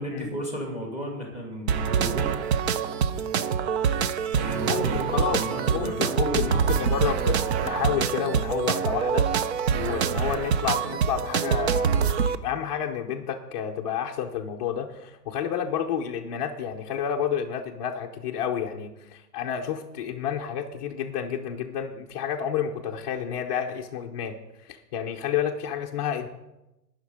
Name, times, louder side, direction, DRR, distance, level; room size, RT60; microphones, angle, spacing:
voice 1, 0.0-2.3 4.4-7.0, equal, 15° right, 1 dB, 2.3 m, -34 dB
sound 1, 1.7-12.4, right 7 dB, 40° right, 0.6 m, -25 dB
voice 2, 4.6-5.4 5.7-9.3 9.7-24.4 24.6-26.3, left 8 dB, 25° left, -1 dB, 0.6 m, -30 dB
18.0 x 6.5 x 4.8 m, 0.95 s
hypercardioid pair, 150°, 50 cm